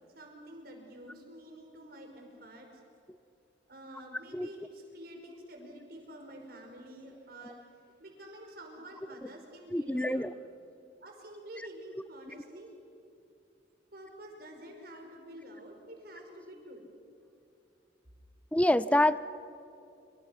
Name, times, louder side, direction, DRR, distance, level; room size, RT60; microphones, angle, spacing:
voice 1, 0.1-2.8 3.7-7.7 8.0-10.4 11.0-12.7 13.9-16.8, right 1 dB, 60° right, 2 dB, 5.5 m, -48 dB
voice 2, 9.7-10.3 18.5-19.2, left 1 dB, 10° left, 15 dB, 0.5 m, -26 dB
27.0 x 25.5 x 6.0 m, 2.6 s
head